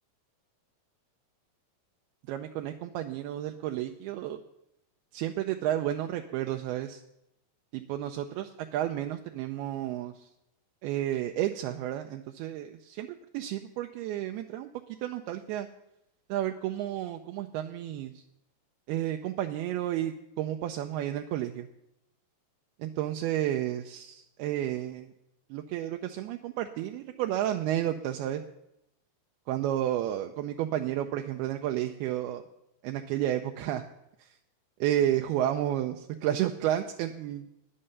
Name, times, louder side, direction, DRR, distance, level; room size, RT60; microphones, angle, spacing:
voice 1, 2.3-4.4 5.1-7.0 7.7-10.1 10.8-13.1 13.3-14.7 15.0-15.7 16.3-18.1 18.9-21.7 22.8-25.1 25.5-28.4 29.5-32.4 32.8-33.8 34.8-37.5, right 12 dB, 80° right, 5 dB, 2.5 m, -31 dB
11.0 x 10.0 x 6.6 m, 0.82 s
omnidirectional pair, 4.7 m